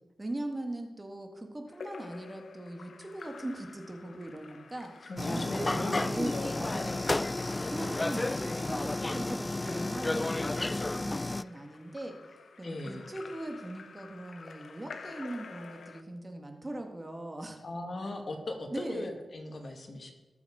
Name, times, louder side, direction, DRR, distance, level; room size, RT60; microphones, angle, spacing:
voice 1, 0.2-7.1 7.7-12.2 12.6-17.6 18.0-18.1 18.7-19.1, right 1 dB, 25° right, 4 dB, 1.6 m, -40 dB
Splash splatter / Drip / Trickle dribble, 1.7-16.0, left 5 dB, 70° left, 0.9 m, -49 dB
voice 2, 5.0-7.1 12.6-13.1 17.6-20.1, left 2 dB, 55° left, 3 dB, 2.0 m, -38 dB
sound 1, 5.2-11.4, left 2 dB, 25° left, 0.3 m, -32 dB
20.0 x 7.1 x 4.8 m, 1.2 s
wide cardioid pair, 90°, 0 cm